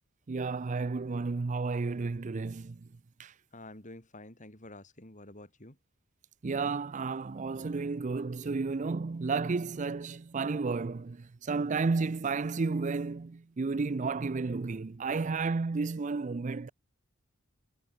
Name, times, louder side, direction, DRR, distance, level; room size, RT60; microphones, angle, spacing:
voice 1, 0.3-2.8 3.2-3.3 6.4-16.7, right 4 dB, 35° right, 0.4 m, -32 dB
voice 2, 3.5-5.8, left 2 dB, 35° left, 4.8 m, -49 dB
head